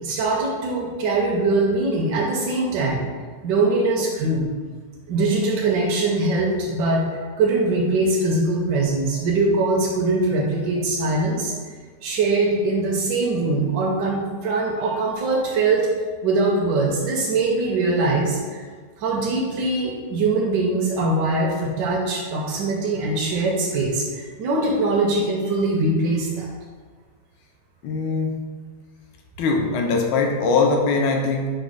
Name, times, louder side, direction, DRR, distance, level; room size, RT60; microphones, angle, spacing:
voice 1, 0.0-3.0 3.4-4.5 5.1-11.5 12.0-15.9 16.2-18.6 19.0-26.5, right 2 dB, 75° right, -2 dB, 1.2 m, -22 dB
voice 2, 27.8-28.3 29.4-31.5, left 4 dB, 80° left, 1 dB, 1.3 m, -21 dB
5.1 x 2.1 x 4.6 m, 1.5 s
omnidirectional pair, 1.9 m